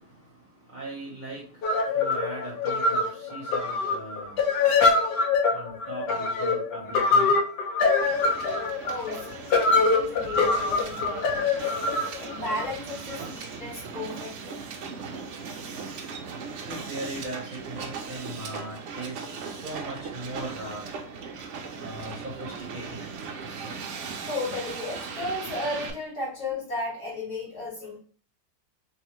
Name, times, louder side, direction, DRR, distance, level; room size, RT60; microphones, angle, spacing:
voice 1, 0.7-1.4 1.9-4.4 5.5-7.3 16.7-20.8 21.8-22.8, right 1 dB, 30° right, -5 dB, 1.0 m, -39 dB
sound 1, 1.6-13.2, left 3 dB, 80° left, 1.3 m, -24 dB
Hiss, 8.0-25.9, right 5 dB, 70° right, 0.7 m, -38 dB
voice 2, 8.8-11.7 12.2-14.6 23.6-23.7 24.3-28.0, left 2 dB, 65° left, -5 dB, 2.4 m, -34 dB
3.3 x 3.1 x 3.0 m, 0.42 s
omnidirectional pair, 1.8 m